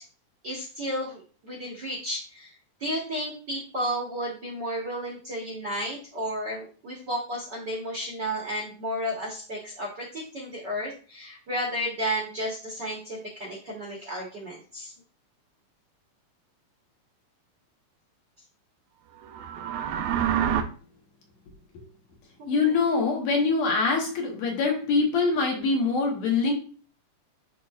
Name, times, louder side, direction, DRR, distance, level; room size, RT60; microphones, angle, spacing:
voice 1, 0.4-14.9 22.4-22.7, equal, 55° right, -2 dB, 1.2 m, -33 dB
sound 1, 19.2-20.6, right 9 dB, 75° right, 2.0 m, -27 dB
voice 2, 22.5-26.5, left 4 dB, 65° left, 0 dB, 2.2 m, -24 dB
10.5 x 3.8 x 2.4 m, 0.40 s
omnidirectional pair, 3.8 m